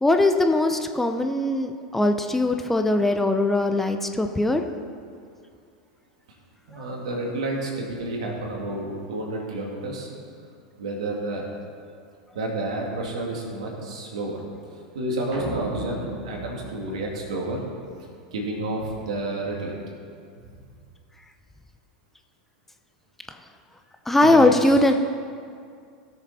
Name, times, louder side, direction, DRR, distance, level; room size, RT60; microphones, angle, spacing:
voice 1, 0.0-4.6 24.1-24.9, left 2 dB, 5° left, 5 dB, 0.7 m, -20 dB
voice 2, 6.7-10.1 10.8-11.4 12.3-14.4 14.9-17.6 17.9-19.8 24.2-24.8, right 2 dB, 75° right, -1 dB, 2.7 m, -30 dB
sound 1, 15.3-17.8, right 1 dB, 55° right, 3.2 m, -36 dB
17.0 x 6.8 x 4.3 m, 2.3 s
hypercardioid pair, 95°, 3 cm